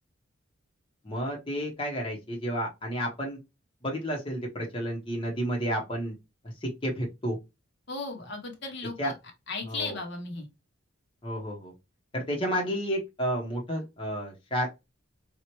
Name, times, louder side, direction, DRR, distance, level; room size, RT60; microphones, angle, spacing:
voice 1, 1.0-3.4 3.8-6.1 6.6-7.4 9.0-9.1 9.7-10.0 11.2-11.7 12.1-14.7, equal, 25° left, -1 dB, 0.9 m, -31 dB
voice 2, 7.9-9.2 9.5-10.5, left 3 dB, 55° left, 3 dB, 1.0 m, -36 dB
4.3 x 2.4 x 3.0 m, 0.23 s
head